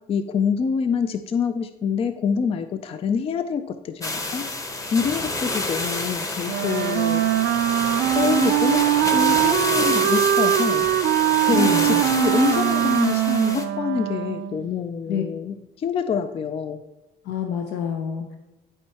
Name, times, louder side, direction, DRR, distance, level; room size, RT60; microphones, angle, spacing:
voice 1, 0.1-4.5 4.9-7.2 8.1-10.9 11.4-16.8, left 6 dB, 35° left, 9 dB, 0.4 m, -26 dB
sound 1, 4.0-13.6, left 2 dB, 20° left, 0.9 m, -29 dB
Wind instrument woodwind instrument, 6.5-14.7, right 13 dB, 80° right, 0.4 m, -21 dB
voice 2, 11.5-12.0 15.1-15.2 17.2-18.4, left 7 dB, 80° left, 4 dB, 0.7 m, -26 dB
11.5 x 4.5 x 2.9 m, 0.98 s
cardioid pair, 110°, 17 cm